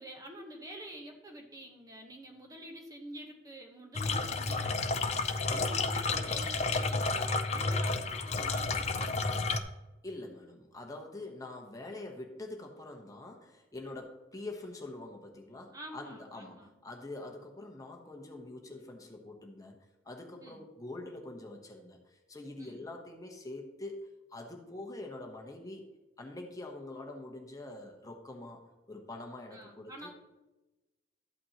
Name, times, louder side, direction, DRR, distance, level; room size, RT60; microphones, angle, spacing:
voice 1, 0.0-9.7 15.7-16.7 20.4-20.7 22.6-22.9 29.5-30.1, equal, 20° right, 1 dB, 1.0 m, -48 dB
sound 1, 3.9-9.6, left 3 dB, 35° left, 0.5 m, -31 dB
voice 2, 5.5-5.8 10.0-19.8 20.0-25.9 26.2-29.9, left 2 dB, 20° left, 2 dB, 1.0 m, -45 dB
12.5 x 8.4 x 2.9 m, 1.1 s
head